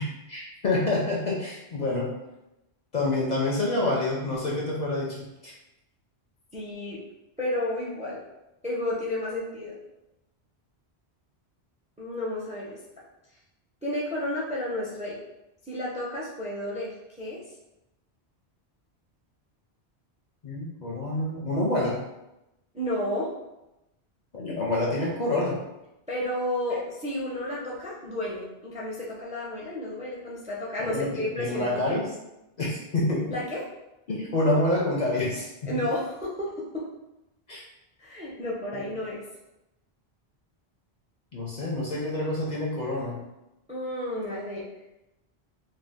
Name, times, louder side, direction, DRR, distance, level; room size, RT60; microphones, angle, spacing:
voice 1, 0.0-2.1 2.9-5.5 20.4-22.0 24.3-25.6 30.8-31.1 31.4-32.1 32.6-33.4 34.1-35.5 37.5-37.6 38.7-38.9 41.3-43.3, left 2 dB, 50° left, -4 dB, 0.6 m, -27 dB
voice 2, 6.5-7.0 7.4-8.2 8.6-9.8 12.0-12.8 13.8-15.2 15.7-17.4 22.7-23.3 26.1-32.0 33.3-33.6 35.6-36.8 38.0-39.2 43.7-44.6, left 1 dB, 10° right, -5 dB, 0.4 m, -31 dB
2.7 x 2.2 x 3.4 m, 0.93 s
omnidirectional pair, 1.1 m